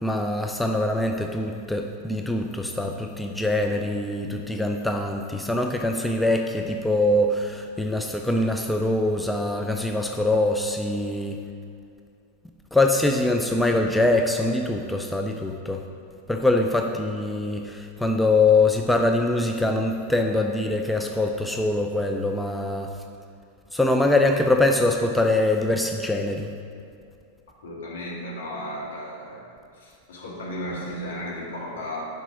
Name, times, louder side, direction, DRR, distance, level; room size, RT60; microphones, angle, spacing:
voice 1, 0.0-11.4 12.7-15.8 16.3-22.9 23.7-26.5, left 2 dB, 5° left, 3 dB, 0.4 m, -23 dB
voice 2, 27.6-29.4 29.8-32.0, equal, 65° left, -5 dB, 1.9 m, -34 dB
6.0 x 5.3 x 6.1 m, 2.4 s
figure-of-eight pair, 90°, 0 cm